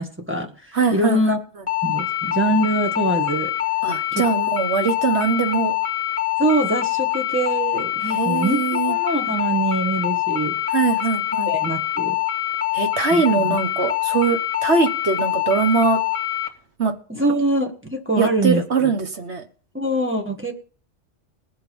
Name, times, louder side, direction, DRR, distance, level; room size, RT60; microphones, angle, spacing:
voice 1, 0.0-1.4 1.8-3.5 4.1-4.2 6.4-10.6 11.5-12.2 13.1-13.6 17.1-18.6 19.7-20.5, right 1 dB, 10° right, 1 dB, 1.6 m, -23 dB
voice 2, 0.7-1.2 3.8-5.8 8.0-9.0 10.7-11.5 12.7-16.0 16.8-16.9 18.2-19.4, right 5 dB, 60° right, 6 dB, 1.6 m, -22 dB
sound 1, 1.7-16.5, left 13 dB, 25° left, 1.8 m, -24 dB
19.0 x 8.1 x 5.4 m, 0.43 s
omnidirectional pair, 1.3 m